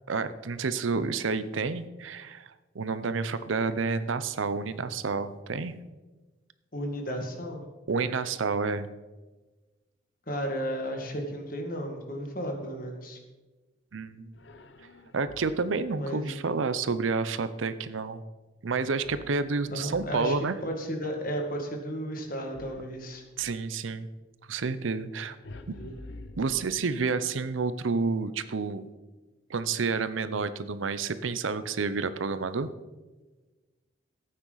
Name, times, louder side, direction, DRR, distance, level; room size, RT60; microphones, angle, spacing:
voice 1, 0.1-5.8 7.9-8.9 13.9-14.3 15.1-18.2 18.6-20.6 23.4-24.1 24.5-25.4 25.7-25.8 26.4-28.9 29.5-32.7, right 4 dB, 85° right, 13 dB, 0.6 m, -29 dB
voice 2, 6.7-7.6 10.3-13.2 16.0-16.4 19.7-20.4 20.6-23.2 25.6-26.0, equal, 45° left, 2 dB, 1.8 m, -34 dB
sound 1, 14.3-15.8 19.0-20.6 22.5-23.7 25.4-27.1, left 2 dB, 65° left, 0.7 m, -48 dB
14.0 x 8.8 x 4.0 m, 1.2 s
head